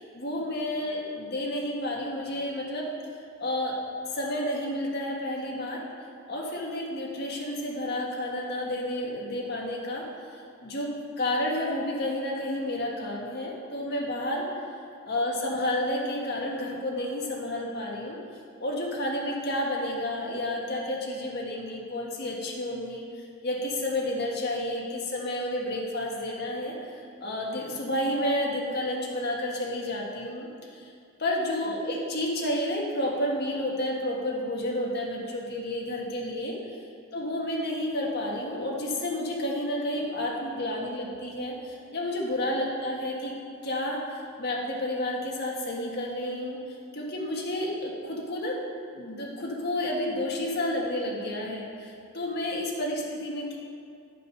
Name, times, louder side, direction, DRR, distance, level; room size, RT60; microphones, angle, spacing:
voice 1, 0.0-2.9 3.4-3.8 4.1-5.8 6.3-14.6 15.0-18.2 18.6-23.1 23.4-30.9 31.2-36.6 37.1-43.4 43.6-46.6 46.9-53.6, left 1 dB, 50° left, -2 dB, 1.6 m, -31 dB
10.5 x 5.3 x 5.6 m, 2.3 s
head